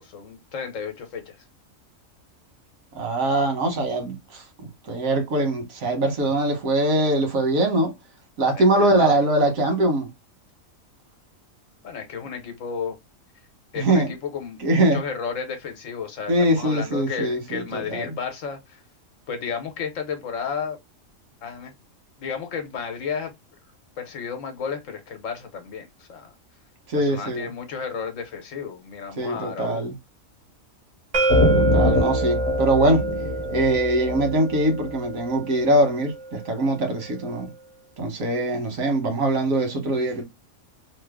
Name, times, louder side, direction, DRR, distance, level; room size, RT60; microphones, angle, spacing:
voice 1, 0.0-1.4 8.5-9.2 11.8-13.0 13.7-18.8 19.3-20.8 21.4-21.7 22.2-23.3 24.0-26.3 26.9-29.9, left 6 dB, 70° left, 1.2 m, -33 dB
voice 2, 2.9-4.4 4.9-7.9 8.4-10.1 13.7-14.1 14.6-15.0 16.3-18.1 26.9-27.5 29.2-29.9 31.5-33.0 33.5-37.5 38.0-40.2, right 1 dB, 90° right, 1.4 m, -22 dB
sound 1, 31.1-36.9, right 3 dB, 60° right, 0.4 m, -27 dB
sound 2, 31.3-34.9, left 2 dB, 40° left, 0.9 m, -23 dB
3.1 x 2.0 x 3.4 m
omnidirectional pair, 1.4 m